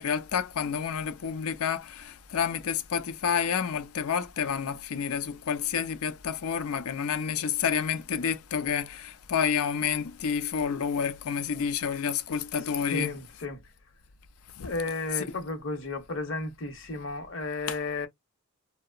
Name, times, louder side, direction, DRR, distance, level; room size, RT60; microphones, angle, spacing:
voice 1, 0.0-13.1 14.6-14.7 17.7-17.8, left 7 dB, 85° left, 0.4 m, -29 dB
voice 2, 12.9-13.6 14.6-18.1, left 2 dB, 60° left, 0.8 m, -33 dB
2.8 x 2.0 x 2.3 m
head